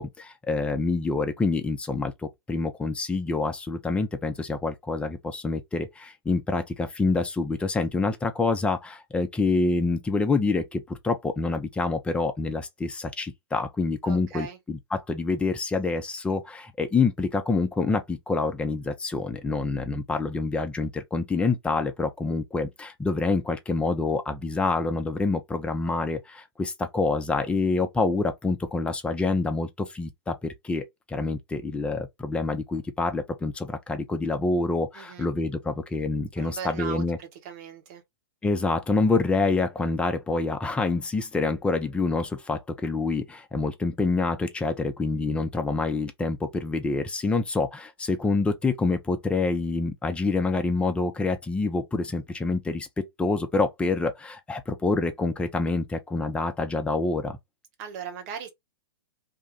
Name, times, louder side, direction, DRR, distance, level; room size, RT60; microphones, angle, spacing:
voice 1, 0.0-37.2 38.4-57.4, left 3 dB, 10° left, 0.6 m, -27 dB
voice 2, 14.0-14.6 34.9-35.3 36.4-38.0 57.8-58.5, right 7 dB, 40° right, 1.3 m, -38 dB
2.9 x 2.4 x 3.8 m
figure-of-eight pair, 110°, 13 cm